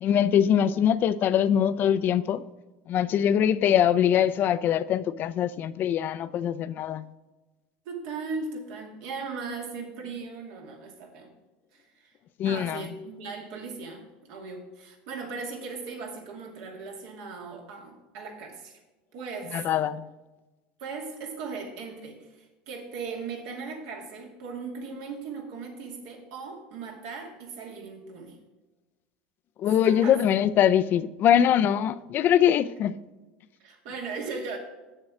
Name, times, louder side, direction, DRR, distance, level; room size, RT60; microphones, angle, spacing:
voice 1, 0.0-2.4 2.9-7.0 12.4-12.8 19.5-20.0 29.6-32.9, left 9 dB, 45° left, 0.5 m, -23 dB
voice 2, 7.9-11.3 11.7-12.1 12.4-18.8 19.1-19.7 20.8-28.4 29.8-30.2 33.6-34.6, right 4 dB, 70° right, 2.3 m, -38 dB
7.7 x 7.2 x 4.9 m
supercardioid pair, 115°, 5 cm